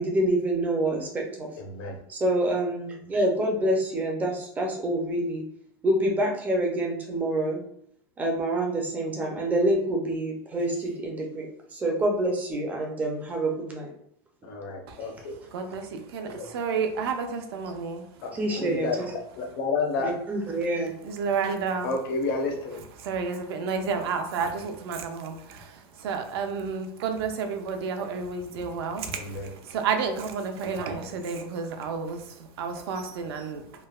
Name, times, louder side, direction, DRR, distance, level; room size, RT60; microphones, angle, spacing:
voice 1, 0.0-1.5 2.1-5.4 5.8-7.6 8.2-13.9 18.3-19.1 20.0-20.9, right 1 dB, 10° right, 1 dB, 0.3 m, -27 dB
voice 2, 1.6-2.0 14.4-15.3 16.3-16.4 18.2-20.1 21.8-22.8 29.2-29.5, left 3 dB, 65° left, 2 dB, 0.7 m, -30 dB
voice 3, 15.5-18.0 21.0-21.9 23.0-33.9, right 5 dB, 80° right, 5 dB, 0.5 m, -31 dB
3.1 x 2.0 x 2.3 m, 0.70 s
supercardioid pair, 170°, 13 cm